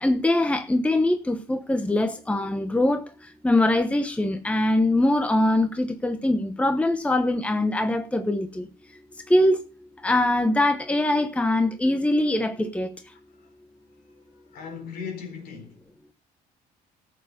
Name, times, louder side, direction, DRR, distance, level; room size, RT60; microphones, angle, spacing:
voice 1, 0.0-3.0 3.4-8.7 9.3-9.6 10.0-12.9, left 1 dB, 5° left, 1.0 m, -22 dB
voice 2, 14.1-15.8, left 6 dB, 65° left, 4.1 m, -38 dB
13.5 x 8.1 x 5.2 m
cardioid pair, 110°, 17 cm